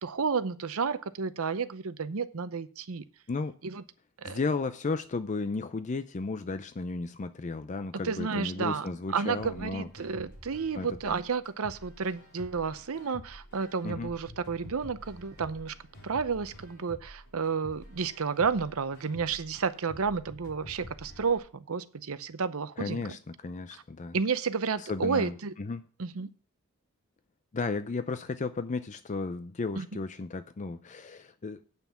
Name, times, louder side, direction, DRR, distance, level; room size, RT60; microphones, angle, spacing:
voice 1, 0.0-3.0 3.6-3.8 4.2-4.4 8.0-15.7 16.0-23.0 24.1-25.5 26.0-26.3 29.8-29.9, right 5 dB, 70° right, 0.7 m, -31 dB
voice 2, 4.2-9.9 10.7-11.2 13.8-14.1 22.8-24.2 24.8-25.8 27.5-31.6, left 3 dB, 35° left, 0.5 m, -34 dB
sound 1, 9.4-21.4, left 1 dB, 50° left, 4.8 m, -49 dB
9.0 x 5.9 x 7.1 m
head